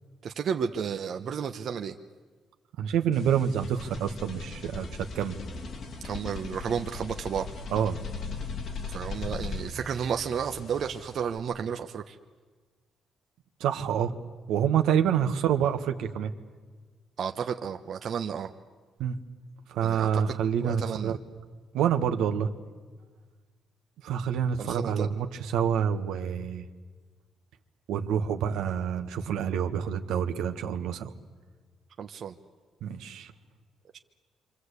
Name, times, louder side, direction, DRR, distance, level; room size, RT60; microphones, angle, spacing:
voice 1, 0.2-2.0 6.0-7.5 8.9-12.2 17.2-18.5 19.8-21.1 24.6-25.1 32.0-32.3, right 7 dB, 60° right, 5 dB, 1.0 m, -32 dB
voice 2, 2.8-5.4 7.7-8.0 13.6-14.1 14.5-16.3 19.0-19.2 19.7-21.2 21.7-22.5 24.0-26.6 27.9-31.1 32.8-33.3, right 8 dB, 90° right, 6 dB, 1.5 m, -27 dB
sound 1, 3.1-11.4, left 4 dB, 60° left, 2.7 m, -39 dB
27.5 x 25.0 x 8.3 m, 1.4 s
cardioid pair, 90°, 0 cm